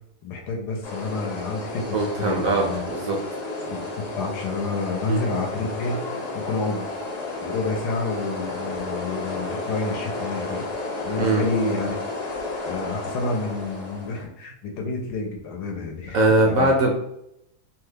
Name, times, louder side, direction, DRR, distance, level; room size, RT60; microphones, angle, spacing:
voice 1, 0.2-2.9 3.7-6.0 6.3-6.9 7.4-10.7 11.0-12.0 12.7-16.8, left 3 dB, 80° left, 1 dB, 1.1 m, -29 dB
sound 1, 0.8-14.3, left 2 dB, 55° left, 1.0 m, -32 dB
voice 2, 1.9-3.2 5.1-5.2 11.2-11.4 16.1-16.9, right 2 dB, 65° right, 0 dB, 0.9 m, -21 dB
2.9 x 2.3 x 3.3 m, 0.80 s
omnidirectional pair, 1.8 m